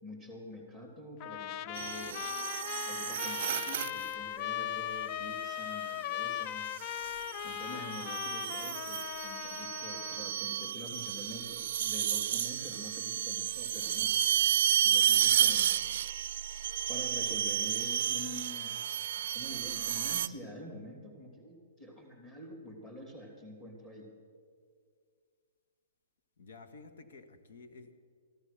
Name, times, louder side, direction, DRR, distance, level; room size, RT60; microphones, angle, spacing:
voice 1, 0.0-2.3 2.9-6.7 7.4-14.1 14.8-16.1 16.9-18.8 19.3-24.1, left 1 dB, 10° left, 0 dB, 3.0 m, -46 dB
Trumpet, 1.2-10.3, left 12 dB, 35° left, 0.3 m, -38 dB
sound 1, 1.7-4.1 5.5-5.9 6.7-20.3, right 10 dB, 55° right, 0.4 m, -32 dB
voice 2, 26.4-27.9, left 3 dB, 70° left, 8 dB, 1.5 m, -52 dB
15.0 x 11.5 x 6.7 m, 2.1 s
hypercardioid pair, 140°, 0 cm